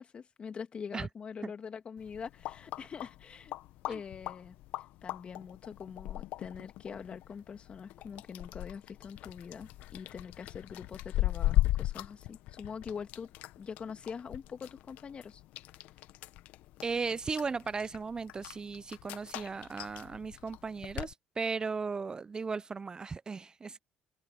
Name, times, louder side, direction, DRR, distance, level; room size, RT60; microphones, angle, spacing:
voice 1, 0.0-3.5 3.8-4.6 5.0-13.3 13.6-15.4, left 6 dB, 45° left, 2.3 m, -44 dB
sound 1, 2.0-21.1, left 16 dB, 75° left, 0.8 m, -38 dB
voice 2, 16.8-23.8, right 4 dB, 30° right, 0.3 m, -36 dB
open air
supercardioid pair, 70°, 3 cm